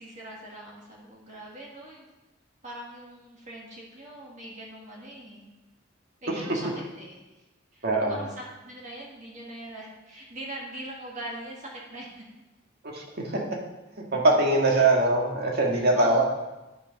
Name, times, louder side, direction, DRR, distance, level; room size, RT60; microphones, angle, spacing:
voice 1, 0.0-2.1 2.6-5.4 6.2-6.7 7.0-7.4 7.7-12.2 14.7-14.9 15.7-16.2, right 1 dB, 40° right, -3 dB, 1.9 m, -42 dB
voice 2, 6.3-6.6 7.8-8.2 12.8-13.4 14.0-16.2, right 2 dB, 55° right, -1 dB, 1.9 m, -23 dB
9.9 x 6.6 x 5.3 m, 1.0 s
head